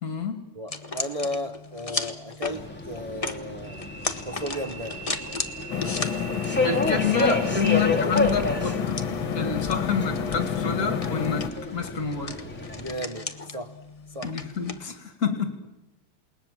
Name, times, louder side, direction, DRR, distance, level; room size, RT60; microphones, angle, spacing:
voice 1, 0.0-0.4 6.6-9.0 9.3-12.4 14.2-15.6, left 6 dB, 45° left, 7 dB, 2.5 m, -28 dB
voice 2, 0.5-3.9 4.3-5.0 7.0-7.1 7.7-8.2 12.7-13.7 14.1-14.3, equal, 40° right, 5 dB, 0.5 m, -34 dB
sound 1, 0.7-14.9, left 3 dB, 25° left, 0.9 m, -37 dB
Subway metro underground, 2.4-12.9, left 2 dB, 5° left, 2.5 m, -31 dB
sound 2, 5.7-11.5, left 7 dB, 65° left, 2.0 m, -29 dB
28.5 x 20.5 x 7.4 m, 0.99 s
omnidirectional pair, 2.4 m